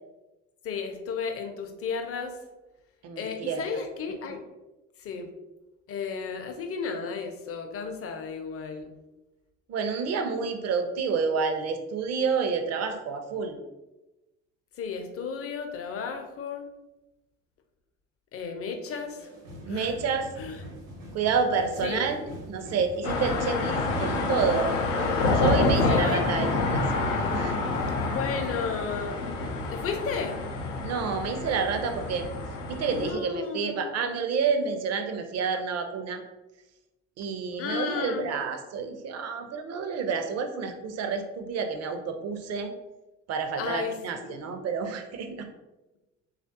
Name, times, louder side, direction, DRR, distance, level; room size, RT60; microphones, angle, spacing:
voice 1, 0.6-2.4 3.2-4.4 5.0-5.3 5.9-8.9 14.8-16.7 18.3-19.3 19.7-20.0 20.4-20.6 21.8-22.0 23.4-23.5 25.8-26.2 28.1-29.2 29.7-30.4 32.9-34.2 37.6-38.3 43.6-44.4, left 5 dB, 40° left, 6 dB, 0.6 m, -33 dB
voice 2, 3.0-3.6 9.7-13.6 19.7-20.3 21.1-24.7 25.3-26.8 27.3-27.6 30.8-32.3 32.7-36.2 37.2-42.7 43.3-45.5, right 5 dB, 45° right, 6 dB, 0.5 m, -29 dB
sound 1, 18.9-28.5, equal, 75° right, 1.0 m, -43 dB
sound 2, 23.0-33.1, left 3 dB, 85° left, 0.5 m, -28 dB
3.3 x 2.4 x 2.6 m, 1.0 s
figure-of-eight pair, 50°, 37 cm